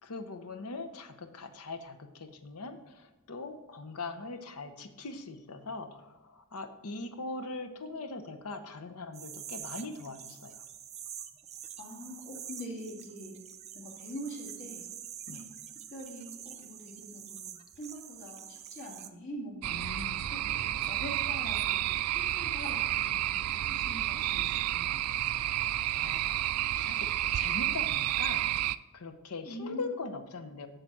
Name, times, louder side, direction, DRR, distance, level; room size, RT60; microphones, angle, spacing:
voice 1, 0.0-10.6 15.3-15.5 19.7-20.3 25.3-26.2 26.8-28.5 28.9-30.7, left 3 dB, 80° left, 8 dB, 0.9 m, -41 dB
sound 1, 9.1-19.1, right 9 dB, 30° right, 0.5 m, -46 dB
voice 2, 11.8-13.3 13.7-14.8 15.3-15.6 15.9-19.8 20.3-25.0 29.5-29.9, equal, 55° left, -2 dB, 2.2 m, -44 dB
sound 2, 19.6-28.8, right 13 dB, 80° right, 0.3 m, -30 dB
8.0 x 6.7 x 6.1 m, 1.1 s
head